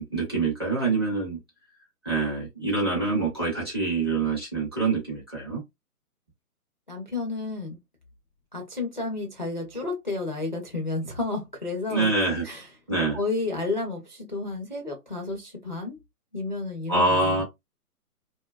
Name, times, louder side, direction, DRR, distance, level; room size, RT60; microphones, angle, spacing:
voice 1, 0.0-1.4 2.0-5.6 11.9-12.4 12.9-13.2 16.9-17.4, right 3 dB, 15° right, 0.5 m, -25 dB
voice 2, 6.9-7.8 8.5-12.1 12.4-12.7 13.1-16.0 16.3-17.4, left 3 dB, 35° left, 0.4 m, -31 dB
2.6 x 2.2 x 2.2 m
hypercardioid pair, 150°, 47 cm